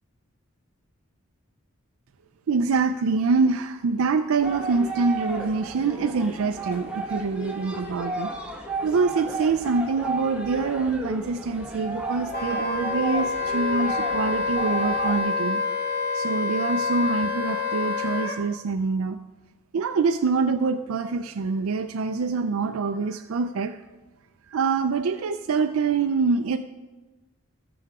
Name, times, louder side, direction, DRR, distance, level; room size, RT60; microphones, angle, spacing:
voice 1, 2.5-8.3 8.8-15.6 16.1-19.2 19.7-23.8 24.5-26.6, right 4 dB, 75° right, 7 dB, 0.4 m, -25 dB
sound 1, 4.4-15.2, right 2 dB, 5° right, 1.1 m, -34 dB
Wind instrument woodwind instrument, 12.3-18.4, left 4 dB, 45° left, 1.9 m, -27 dB
17.5 x 6.9 x 3.6 m, 1.2 s
head